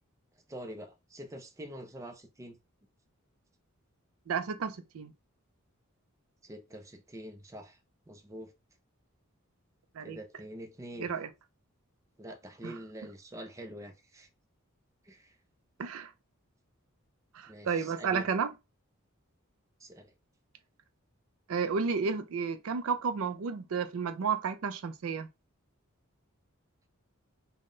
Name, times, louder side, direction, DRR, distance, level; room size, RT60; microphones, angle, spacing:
voice 1, 0.5-2.6 6.4-7.8 8.1-8.5 10.0-11.1 12.2-14.3 15.0-15.4 17.5-18.3 19.8-20.1, right 1 dB, 15° right, 0.5 m, -45 dB
voice 2, 4.3-5.1 10.0-10.2 11.0-11.3 12.6-12.7 15.8-16.1 17.3-18.5 21.5-25.3, right 5 dB, 75° right, 0.4 m, -32 dB
3.7 x 2.2 x 3.7 m
head